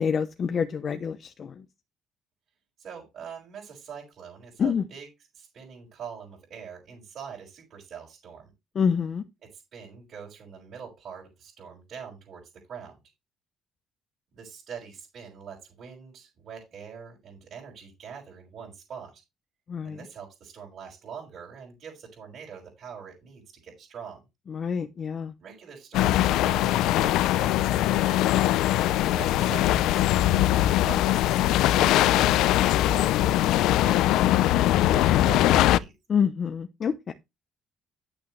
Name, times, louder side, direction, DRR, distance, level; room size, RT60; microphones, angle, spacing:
voice 1, 0.0-1.5 4.6-4.8 8.7-9.2 19.7-20.0 24.5-25.3 36.1-37.1, left 6 dB, 30° left, 0.8 m, -27 dB
voice 2, 2.8-5.1 5.3-8.5 9.4-12.9 14.3-19.2 19.8-24.2 25.4-28.3 29.0-35.9, right 7 dB, 45° right, 5.6 m, -44 dB
sound 1, 25.9-35.8, left 14 dB, 80° left, 0.5 m, -21 dB
11.0 x 8.6 x 3.2 m
cardioid pair, 180°, 0 cm